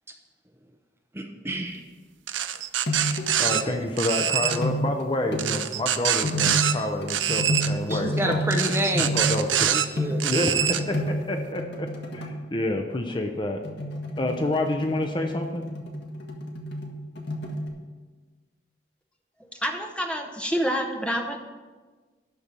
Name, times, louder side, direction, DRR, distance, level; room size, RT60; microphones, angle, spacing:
voice 1, 1.1-1.8 7.9-9.2 9.7-10.3, right 1 dB, 15° right, 3 dB, 0.7 m, -28 dB
sound 1, 2.3-3.6 4.0-4.6 5.4-6.7 7.1-7.7 8.5-9.9 10.2-10.8, right 10 dB, 85° right, 0.6 m, -25 dB
sound 2, 2.9-3.7 4.2-5.7 6.2-12.4 13.6-17.7, equal, 65° left, 1.5 m, -30 dB
voice 2, 3.4-8.4 9.1-9.8 10.2-13.6 14.2-15.6, left 1 dB, 25° left, 4 dB, 0.7 m, -28 dB
voice 3, 19.6-21.4, equal, 5° left, 3 dB, 1.0 m, -27 dB
12.0 x 4.4 x 8.0 m, 1.4 s
head